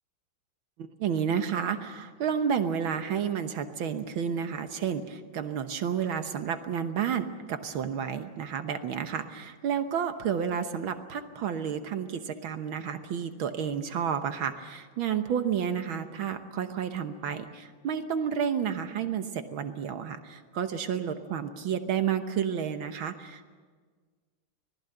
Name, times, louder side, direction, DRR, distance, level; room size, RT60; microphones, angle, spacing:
voice 1, 0.8-23.5, right 7 dB, 70° right, 8 dB, 1.8 m, -31 dB
25.5 x 18.5 x 7.8 m, 1.5 s
omnidirectional pair, 2.3 m